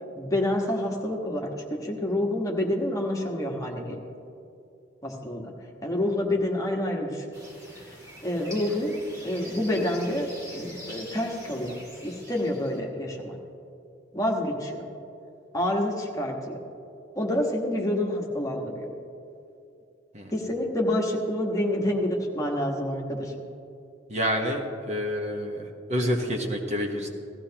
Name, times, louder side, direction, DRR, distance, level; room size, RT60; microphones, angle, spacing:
voice 1, 0.1-4.0 5.0-5.5 5.8-7.2 8.2-8.9 9.2-11.7 12.0-13.4 14.1-14.9 15.5-16.6 17.1-18.9 20.3-23.3, left 1 dB, 20° left, -1 dB, 1.4 m, -28 dB
sound 1, 7.3-12.8, equal, 15° right, 2.6 m, -44 dB
voice 2, 24.1-27.1, equal, 40° right, 2 dB, 1.1 m, -28 dB
17.0 x 14.5 x 2.9 m, 2.6 s
head